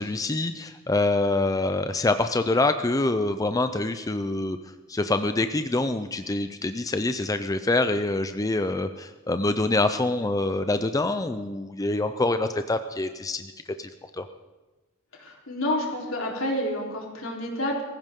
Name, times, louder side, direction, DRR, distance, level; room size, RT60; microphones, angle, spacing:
voice 1, 0.0-4.6 4.9-13.5 13.8-14.2, left 2 dB, 15° left, 9 dB, 0.5 m, -25 dB
voice 2, 15.1-17.8, left 1 dB, 80° left, -1 dB, 3.7 m, -29 dB
23.0 x 15.0 x 3.7 m, 1.2 s
head